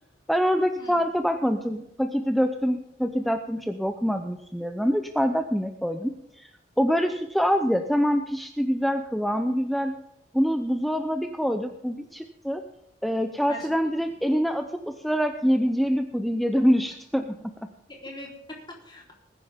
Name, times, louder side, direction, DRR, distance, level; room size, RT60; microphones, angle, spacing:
voice 1, 0.3-6.5 6.8-10.0 10.3-12.6 13.0-17.5, equal, ahead, 6 dB, 0.6 m, -25 dB
voice 2, 17.9-19.1, left 1 dB, 25° left, -2 dB, 3.7 m, -41 dB
20.5 x 10.0 x 3.6 m, 0.81 s
head